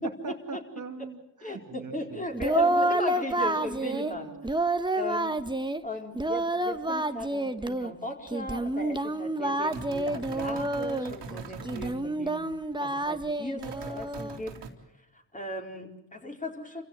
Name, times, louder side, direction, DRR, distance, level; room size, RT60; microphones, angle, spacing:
voice 1, 0.0-2.3 3.9-4.6 11.3-11.8, right 4 dB, 45° right, 5 dB, 1.8 m, -41 dB
voice 2, 1.4-4.3 5.0-5.4 5.8-12.4 12.8-14.5 15.3-16.8, left 1 dB, 20° left, 1 dB, 4.5 m, -37 dB
Singing, 2.3-4.1 4.4-5.8 6.1-7.9 8.3-11.1 11.6-14.4, right 2 dB, 10° right, 1.2 m, -29 dB
sound 1, 9.7-12.0 13.6-14.7, right 4 dB, 80° right, 3.0 m, -42 dB
28.0 x 16.0 x 8.0 m, 0.89 s
cardioid pair, 70°, 42 cm